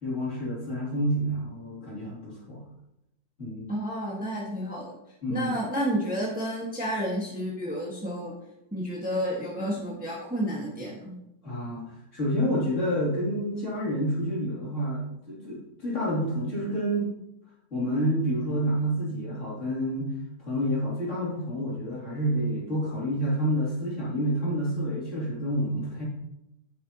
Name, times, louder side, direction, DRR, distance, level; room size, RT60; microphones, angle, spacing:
voice 1, 0.0-2.6 3.4-3.7 5.2-5.5 11.4-17.1 17.7-26.0, equal, 45° left, -7 dB, 3.2 m, -29 dB
voice 2, 3.7-4.9 5.3-8.3 8.7-11.2, equal, 5° right, -4 dB, 1.4 m, -30 dB
9.4 x 6.9 x 2.9 m, 0.85 s
omnidirectional pair, 1.8 m